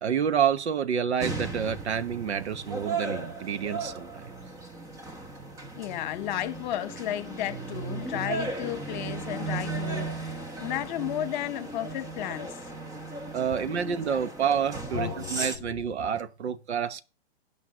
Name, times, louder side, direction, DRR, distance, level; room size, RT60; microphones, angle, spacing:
voice 1, 0.0-4.3 13.3-17.0, right 7 dB, 80° right, 1.1 m, -28 dB
sound 1, 1.2-15.6, right 3 dB, 10° right, 1.0 m, -36 dB
voice 2, 5.7-12.6 14.9-16.1, left 12 dB, 45° left, 1.3 m, -34 dB
11.0 x 5.5 x 5.1 m
hypercardioid pair, 140°, 33 cm